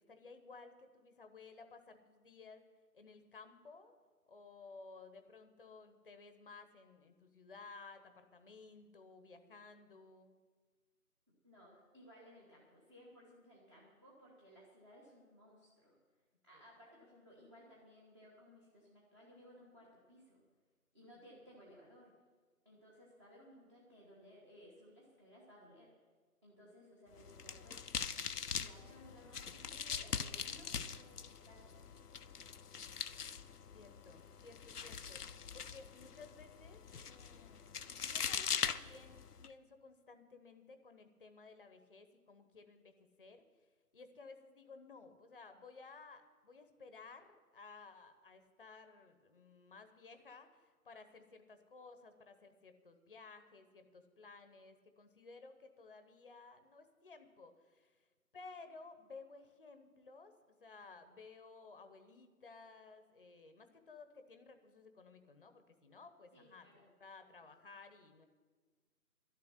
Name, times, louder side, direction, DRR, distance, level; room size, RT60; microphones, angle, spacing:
voice 1, 0.0-2.7 2.9-4.0 4.3-10.4 16.5-16.6 33.7-35.2 35.5-42.9 43.2-43.4 43.9-58.0 58.3-66.7 67.0-68.3, left 4 dB, 35° left, 8 dB, 1.0 m, -56 dB
voice 2, 11.4-16.0 16.4-20.4 20.9-22.1 22.6-25.9 26.4-27.8 28.5-32.2 66.3-66.9, equal, 15° right, -6 dB, 1.2 m, -60 dB
sound 1, 27.1-39.5, left 6 dB, 80° left, 0.8 m, -42 dB
12.0 x 7.4 x 9.9 m, 1.4 s
figure-of-eight pair, 160°, 46 cm